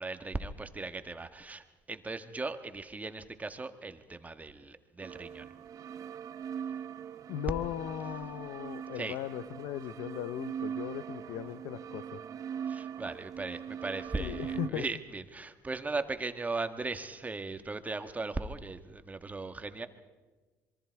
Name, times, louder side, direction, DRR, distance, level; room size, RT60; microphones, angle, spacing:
voice 1, 0.0-5.5 8.9-9.2 12.7-19.9, right 3 dB, 20° right, 8 dB, 1.5 m, -38 dB
sound 1, 5.0-14.7, right 8 dB, 50° right, 1.1 m, -41 dB
voice 2, 7.3-12.2 14.2-14.8, left 12 dB, 80° left, 16 dB, 0.6 m, -38 dB
26.0 x 22.5 x 4.6 m, 1.3 s
supercardioid pair, 80°, 7 cm